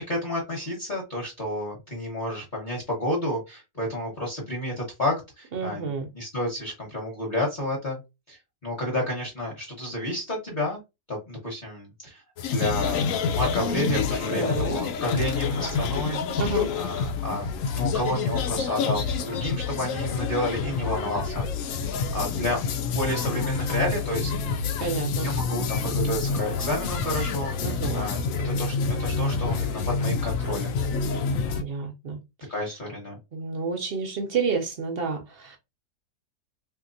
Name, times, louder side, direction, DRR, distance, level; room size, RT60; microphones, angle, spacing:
voice 1, 0.0-8.0 8.3-10.8 11.1-12.2 12.5-13.1 13.3-16.2 16.7-21.4 21.7-21.8 22.1-24.3 25.2-28.2 28.4-30.8 31.4-31.5 32.5-33.2, left 1 dB, 35° left, 1.1 m, -30 dB
voice 2, 5.5-6.1 14.3-14.8 16.4-16.7 24.8-25.3 27.6-28.1 31.5-32.2 33.3-35.6, right 5 dB, 60° right, 0.6 m, -30 dB
sound 1, 12.4-31.6, left 5 dB, 70° left, 0.8 m, -28 dB
3.5 x 2.8 x 2.6 m
omnidirectional pair, 1.7 m